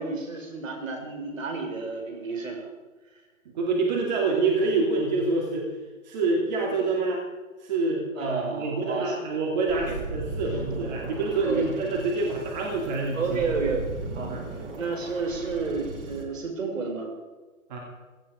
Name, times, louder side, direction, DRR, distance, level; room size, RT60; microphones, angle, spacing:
voice 1, 0.0-2.7 8.2-9.2 9.7-10.0 11.4-11.7 13.1-13.8 14.1-17.1, right 4 dB, 65° right, 3 dB, 5.1 m, -31 dB
voice 2, 3.5-5.7 6.0-7.2 7.6-13.4 14.3-14.4 17.7-17.8, right 3 dB, 30° right, -1 dB, 2.7 m, -26 dB
sound 1, 9.7-16.2, right 3 dB, 10° right, 0.9 m, -37 dB
16.5 x 15.5 x 5.1 m, 1.3 s
hypercardioid pair, 155°, 42 cm